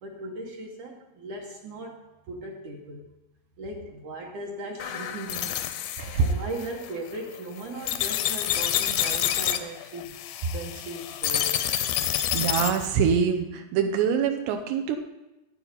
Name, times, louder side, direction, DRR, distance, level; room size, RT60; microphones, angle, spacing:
voice 1, 0.0-2.0 2.3-3.1 3.6-5.6 6.2-11.5, right 2 dB, 70° right, 0 dB, 2.0 m, -38 dB
sound 1, 4.8-12.9, left 11 dB, 80° left, 2.1 m, -28 dB
voice 2, 12.3-15.0, right 7 dB, 90° right, 5 dB, 3.0 m, -24 dB
12.0 x 9.3 x 4.0 m, 0.99 s
omnidirectional pair, 4.6 m